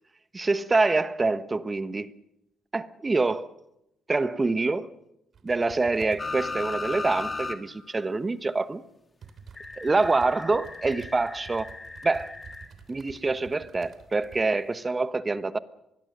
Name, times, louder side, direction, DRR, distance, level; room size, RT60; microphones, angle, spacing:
voice 1, 0.3-2.1 2.7-3.5 4.1-4.9 5.4-8.8 9.8-11.7 12.0-12.3 12.9-15.6, right 3 dB, 25° right, 1.1 m, -26 dB
sound 1, 5.3-6.3 8.4-8.5 9.2-14.5 14.8-14.9, right 6 dB, 55° right, 3.2 m, -49 dB
sound 2, 6.2-7.6 7.9-8.0 9.6-12.7 14.4-14.5, left 3 dB, 30° left, 2.5 m, -36 dB
24.5 x 21.5 x 6.7 m
cardioid pair, 90°, 0 cm